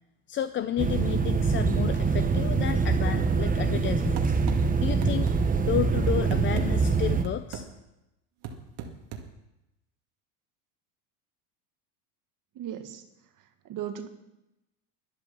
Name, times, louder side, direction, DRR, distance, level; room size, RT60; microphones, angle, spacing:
voice 1, 0.3-4.3 4.8-5.3 5.6-7.7, left 10 dB, 25° left, 11 dB, 0.5 m, -31 dB
sound 1, 0.8-7.2, right 5 dB, 20° right, 1.1 m, -24 dB
sound 2, 4.2-4.6 5.0-5.4 5.8-6.7 7.2-7.7 8.4-9.3, right 6 dB, 60° right, 2.3 m, -35 dB
voice 2, 12.6-13.0 13.7-14.1, right 10 dB, 45° right, 8 dB, 1.8 m, -36 dB
12.5 x 10.0 x 7.2 m, 0.93 s
supercardioid pair, 100°, 43 cm